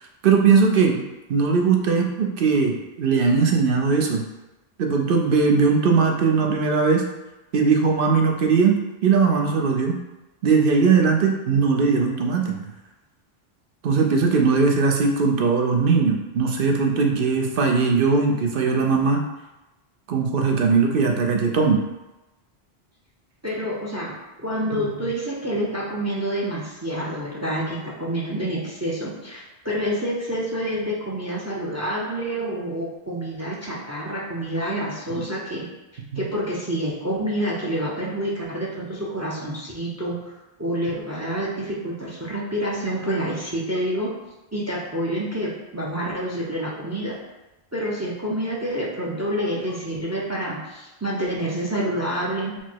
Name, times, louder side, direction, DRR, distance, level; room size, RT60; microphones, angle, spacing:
voice 1, 0.2-1.0 1.3-2.7 3.0-4.2 4.8-7.1 7.5-10.0 10.4-12.6 13.8-19.2 20.1-21.8 25.0-25.1 35.1-35.2 36.1-36.2, right 5 dB, 65° right, 2 dB, 0.8 m, -19 dB
voice 2, 23.4-24.1 24.4-35.7 36.2-40.3 40.6-44.1 44.5-47.2 47.7-52.5, right 1 dB, 20° right, -3 dB, 0.5 m, -28 dB
4.5 x 2.1 x 4.4 m, 1.0 s
omnidirectional pair, 1.1 m